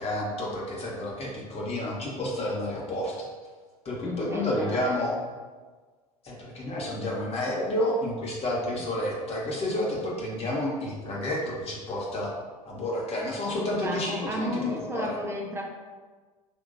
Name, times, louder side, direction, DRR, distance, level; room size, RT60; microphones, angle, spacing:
voice 1, 0.0-3.2 3.8-5.2 6.2-12.3 12.6-15.2, left 1 dB, 30° left, -3 dB, 1.2 m, -30 dB
voice 2, 4.0-5.2 13.8-15.6, equal, 15° right, 0 dB, 0.7 m, -33 dB
5.4 x 2.8 x 2.6 m, 1.4 s
figure-of-eight pair, 70°, 19 cm